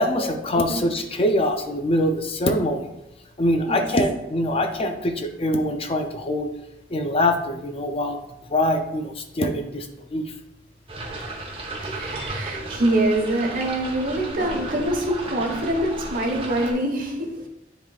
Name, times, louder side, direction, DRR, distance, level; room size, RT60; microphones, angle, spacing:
voice 1, 0.0-2.8 3.4-6.5 6.9-8.2 8.5-10.3, left 1 dB, 35° left, 5 dB, 0.5 m, -23 dB
voice 2, 0.5-0.8 3.6-3.9 11.8-17.5, right 1 dB, 50° right, 1 dB, 1.2 m, -25 dB
sound 1, 10.9-16.7, right 2 dB, 30° right, 1.0 m, -34 dB
10.0 x 4.0 x 2.4 m, 0.88 s
head